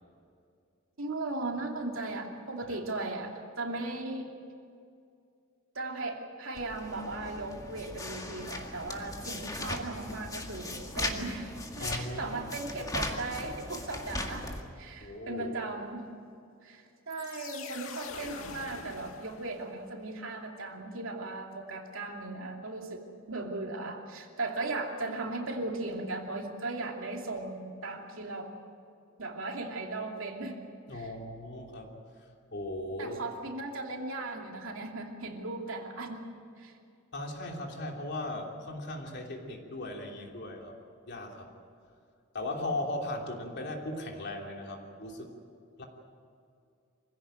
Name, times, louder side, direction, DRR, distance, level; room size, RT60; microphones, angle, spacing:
voice 1, 1.0-4.3 5.7-16.1 16.6-28.5 29.2-30.6 30.9-31.1 33.0-36.2 36.6-36.7, right 2 dB, 75° right, 2 dB, 2.7 m, -37 dB
sound 1, 6.5-14.6, left 2 dB, 15° left, 1.9 m, -38 dB
voice 2, 11.8-12.4 15.0-15.5 30.9-33.2 37.1-40.7 41.1-41.5 42.3-45.3 45.8-45.9, left 1 dB, 55° left, 1 dB, 3.1 m, -38 dB
sound 2, 17.1-19.9, left 5 dB, 85° left, 1.8 m, -44 dB
24.5 x 16.5 x 9.1 m, 2.4 s
head